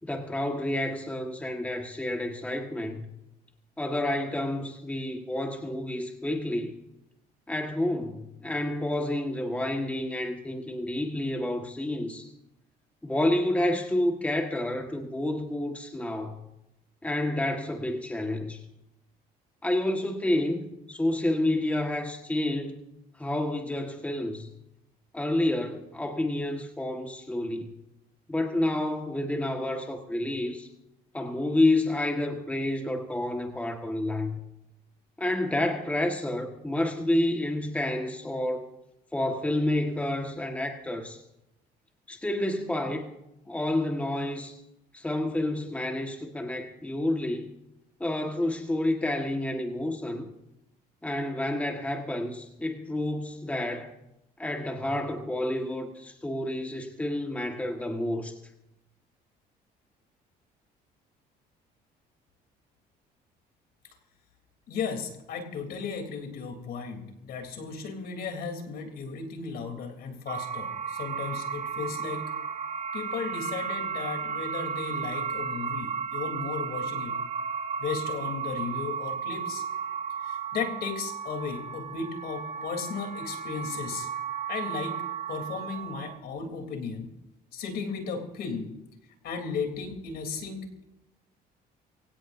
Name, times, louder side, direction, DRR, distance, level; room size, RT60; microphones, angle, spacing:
voice 1, 0.0-3.1 3.8-6.8 7.5-12.3 13.0-16.4 17.0-18.6 19.6-22.8 23.2-24.5 25.1-27.7 28.3-30.7 31.1-34.4 35.2-38.7 39.1-41.2 42.1-43.1 43.5-44.5 44.9-47.5 48.0-50.3 51.0-53.9 54.4-58.3, left 1 dB, 10° left, 3 dB, 1.6 m, -29 dB
voice 2, 64.7-72.3 72.9-77.2 77.8-79.6 80.2-84.1 84.5-85.0 85.3-87.1 87.5-88.7 89.2-90.8, left 5 dB, 65° left, 5 dB, 3.4 m, -35 dB
sound 1, 70.3-86.2, right 6 dB, 45° right, 1.6 m, -34 dB
23.5 x 17.0 x 2.7 m, 0.87 s
cardioid pair, 110°, 17 cm